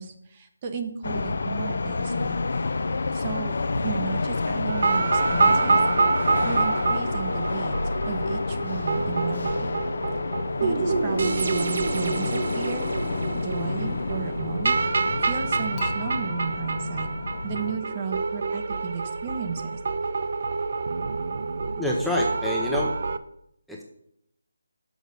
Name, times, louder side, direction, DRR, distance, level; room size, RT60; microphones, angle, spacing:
voice 1, 0.0-2.4 3.1-5.8 6.4-7.7 8.1-9.8 10.6-12.9 13.4-14.7 15.2-17.1 17.4-19.7, right 6 dB, 30° right, 6 dB, 0.9 m, -34 dB
sound 1, 1.0-17.8, left 3 dB, 65° left, 0.5 m, -29 dB
sound 2, 4.7-23.2, right 4 dB, 55° right, 0.5 m, -27 dB
Dishes pots and pans / Chink clink, 15.8-18.9, left 6 dB, 20° left, 1.1 m, -43 dB
voice 2, 21.8-23.0 23.7-23.8, left 2 dB, ahead, -3 dB, 0.7 m, -27 dB
6.3 x 5.0 x 6.6 m, 0.75 s
figure-of-eight pair, 160°, 0 cm